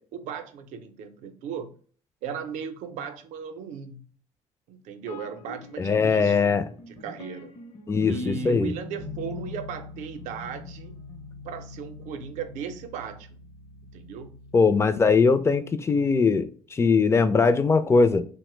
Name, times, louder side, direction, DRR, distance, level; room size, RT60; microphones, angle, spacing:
voice 1, 0.0-1.7 2.2-4.0 4.7-6.4 6.9-7.5 8.0-10.9 11.4-13.4 13.9-14.3, right 6 dB, 80° right, 0.5 m, -36 dB
sound 1, 5.0-14.8, left 4 dB, 55° left, 0.7 m, -43 dB
voice 2, 5.8-6.6 7.9-8.7 14.5-18.2, left 4 dB, 20° left, 0.3 m, -21 dB
3.0 x 2.1 x 3.0 m
cardioid pair, 95°, 12 cm